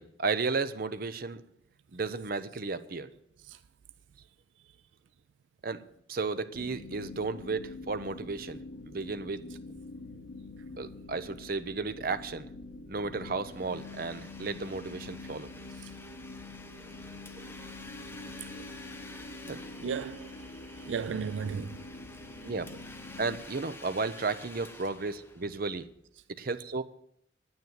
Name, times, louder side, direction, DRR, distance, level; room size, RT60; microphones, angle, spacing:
voice 1, 0.0-1.4 1.9-3.1 5.6-5.8 6.1-9.4 10.8-12.5 12.9-15.5 16.8-16.9 17.4-17.5 18.5-18.7 19.4-19.6 22.4-22.7 23.2-25.9 26.3-26.8, right 4 dB, 55° right, 0.7 m, -34 dB
sound 1, 6.5-23.4, left 2 dB, 75° left, 1.3 m, -46 dB
Domestic sounds home sounds, 13.4-26.0, left 2 dB, 15° left, 0.9 m, -50 dB
voice 2, 19.8-20.5 20.8-21.8, right 6 dB, 85° right, 0.4 m, -35 dB
9.6 x 9.3 x 7.6 m
head